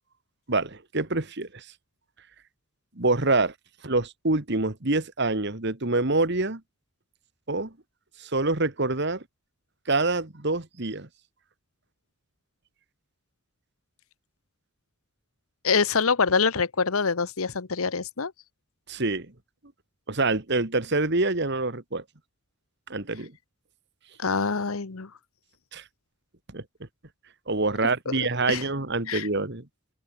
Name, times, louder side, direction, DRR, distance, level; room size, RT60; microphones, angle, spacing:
voice 1, 0.5-1.6 3.0-3.5 3.8-6.6 7.5-7.7 8.2-9.2 9.9-11.1 18.9-19.3 20.1-22.0 22.9-23.3 25.7-25.8 26.5-26.6 27.5-29.7, right 2 dB, 50° right, 1.9 m, -26 dB
voice 2, 15.6-18.3 24.2-25.1 28.1-28.6 29.1-29.3, left 5 dB, 75° left, 1.0 m, -25 dB
open air
head